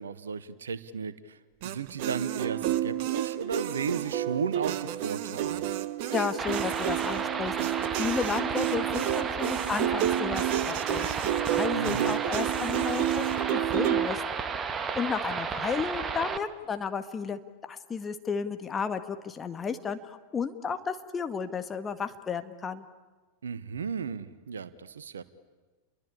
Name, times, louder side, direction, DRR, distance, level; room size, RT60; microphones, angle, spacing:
voice 1, 0.0-1.4 1.6-5.7 11.7-12.2 23.4-25.2, right 6 dB, 70° right, 15 dB, 1.3 m, -34 dB
sound 1, 1.6-14.1, right 12 dB, 50° right, 1.2 m, -30 dB
voice 2, 6.1-11.1 11.5-14.2 14.9-22.9, left 6 dB, 20° left, 8 dB, 1.8 m, -33 dB
sound 2, 6.4-16.4, right 5 dB, 20° right, 1.6 m, -33 dB
30.0 x 23.0 x 8.7 m, 1.3 s
figure-of-eight pair, 90°, 0 cm